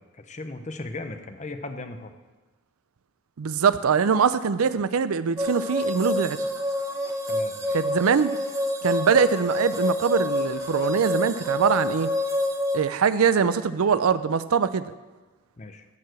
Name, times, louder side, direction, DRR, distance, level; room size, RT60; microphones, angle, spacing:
voice 1, 0.0-2.1 7.3-7.8 15.6-15.8, left 2 dB, 35° left, 7 dB, 0.7 m, -37 dB
voice 2, 3.4-6.4 7.7-8.3 8.8-12.1 12.7-14.9, right 6 dB, 80° right, 14 dB, 0.5 m, -23 dB
sound 1, 5.4-12.8, left 1 dB, 15° right, 0.9 m, -27 dB
14.0 x 4.8 x 6.4 m, 1.2 s
head